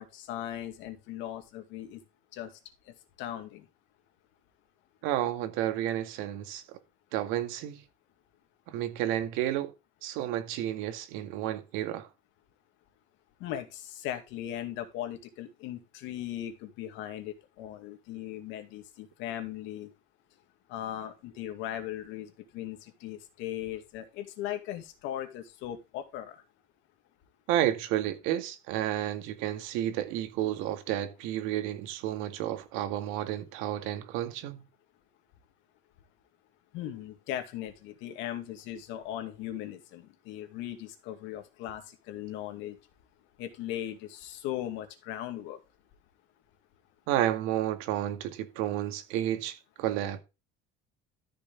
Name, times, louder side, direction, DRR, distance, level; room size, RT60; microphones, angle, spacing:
voice 1, 0.0-2.0 2.3-2.6 2.9-3.7 13.4-19.9 20.7-26.4 36.7-42.8 43.4-45.6, left 12 dB, 70° left, 2.4 m, -38 dB
voice 2, 5.0-6.6 7.1-7.8 8.7-9.7 10.0-12.1 27.5-34.6 47.1-50.2, right 12 dB, 80° right, 2.1 m, -31 dB
13.5 x 6.6 x 3.6 m
cardioid pair, 175°, 21 cm